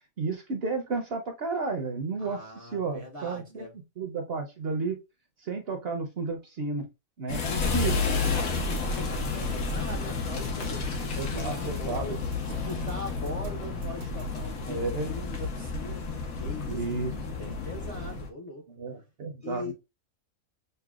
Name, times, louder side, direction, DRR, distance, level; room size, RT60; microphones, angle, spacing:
voice 1, 0.2-3.6 4.0-5.0 5.4-6.9 7.2-8.1 11.1-12.0 14.7-15.1 16.7-17.1 18.7-19.7, right 4 dB, 55° right, 0.8 m, -32 dB
voice 2, 2.2-3.7 8.4-17.0 17.4-18.7 19.4-19.7, left 1 dB, 35° left, 0.6 m, -41 dB
sound 1, 7.3-18.3, left 4 dB, 80° left, 1.3 m, -31 dB
sound 2, 8.4-14.4, right 3 dB, 80° right, 1.3 m, -45 dB
6.5 x 2.2 x 2.3 m
omnidirectional pair, 1.5 m